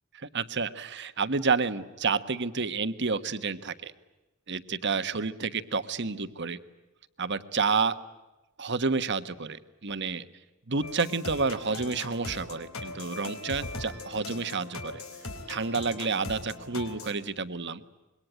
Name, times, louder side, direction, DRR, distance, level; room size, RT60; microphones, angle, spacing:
voice 1, 0.1-3.9 4.5-6.6 7.2-7.9 8.6-10.2 10.7-15.0 15.5-17.8, right 4 dB, 55° right, 11 dB, 1.4 m, -30 dB
sound 1, 10.8-17.1, left 3 dB, 80° left, 4.6 m, -40 dB
26.5 x 22.5 x 9.1 m, 1.1 s
head